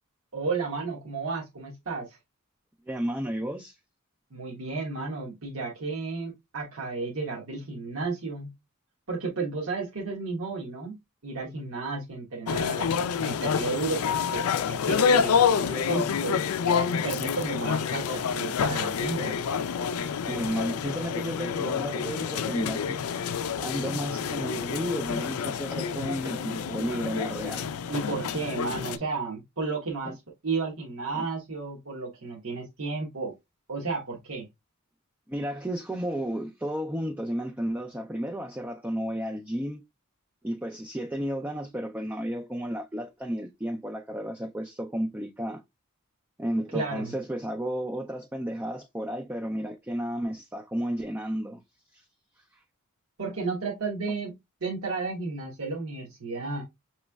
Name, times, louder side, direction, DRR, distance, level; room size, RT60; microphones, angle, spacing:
voice 1, 0.3-2.2 4.3-8.5 9.1-10.9 11.2-12.9 13.2-16.4 17.0-19.4 27.9-33.3 33.7-34.5 46.7-47.1 53.2-54.3 54.6-56.6, right 4 dB, 70° right, 1.1 m, -33 dB
voice 2, 2.9-3.8 20.3-23.0 23.6-27.6 30.0-30.2 31.1-31.3 35.3-39.8 40.4-45.6 46.4-51.6 51.9-52.0 52.4-52.6, equal, 10° right, 0.3 m, -32 dB
sound 1, 12.5-29.0, left 6 dB, 80° left, 0.4 m, -28 dB
6.0 x 3.1 x 2.2 m
head